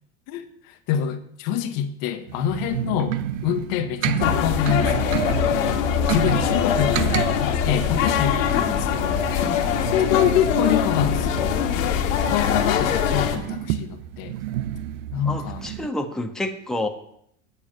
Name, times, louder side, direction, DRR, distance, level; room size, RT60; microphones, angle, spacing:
voice 1, 0.3-5.1 5.4-9.2 10.0-11.3 12.3-14.3 15.1-15.6, left 9 dB, 55° left, 7 dB, 1.4 m, -27 dB
sound 1, 2.3-15.9, right 12 dB, 65° right, 0.9 m, -31 dB
sound 2, 4.2-13.4, left 8 dB, 80° left, 1.7 m, -22 dB
voice 2, 15.2-16.9, left 2 dB, ahead, 4 dB, 1.2 m, -29 dB
8.9 x 7.2 x 8.9 m, 0.72 s
supercardioid pair, 110°, 39 cm